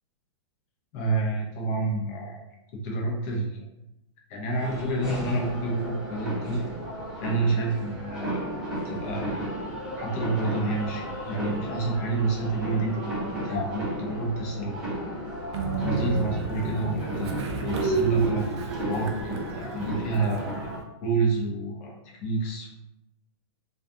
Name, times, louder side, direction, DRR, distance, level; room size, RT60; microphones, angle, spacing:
voice 1, 0.9-2.4 2.8-3.6 4.3-6.6 7.2-8.4 8.8-9.4 10.0-14.8 15.8-18.5 18.9-20.7 21.0-22.7, right 3 dB, 30° left, -1 dB, 0.6 m, -28 dB
sound 1, 4.6-20.8, right 1 dB, 5° right, 0.9 m, -34 dB
Train, 15.5-20.8, right 4 dB, 65° right, 0.5 m, -32 dB
2.3 x 2.3 x 2.6 m, 0.87 s
hypercardioid pair, 160°, 15 cm